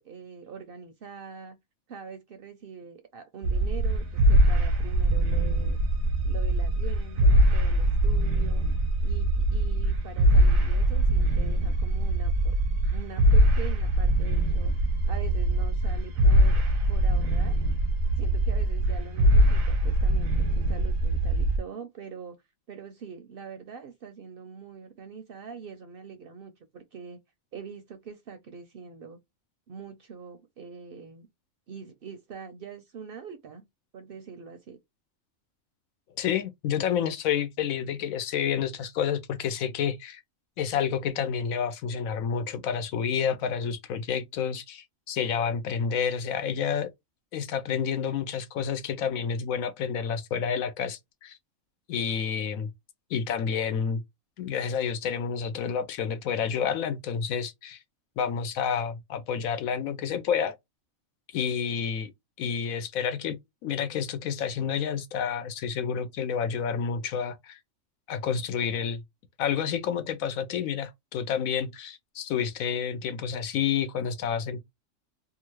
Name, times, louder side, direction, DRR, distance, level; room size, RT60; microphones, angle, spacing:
voice 1, 0.0-1.6 1.9-5.8 6.2-8.7 9.0-12.6 12.9-16.6 16.9-17.6 18.2-22.4 22.7-27.2 27.5-29.2 29.7-31.3 31.7-33.6 33.9-34.8, right 6 dB, 60° right, 0.6 m, -43 dB
sound 1, 3.4-21.6, right 1 dB, 85° right, 1.1 m, -23 dB
voice 2, 36.2-40.2 40.6-46.9 47.3-51.4 51.9-52.7 53.1-54.0 54.4-57.8 58.2-60.5 61.3-62.1 62.4-63.4 63.6-67.6 68.1-69.0 69.4-74.6, left 7 dB, 90° left, 1.1 m, -29 dB
2.7 x 2.4 x 3.0 m
omnidirectional pair, 1.4 m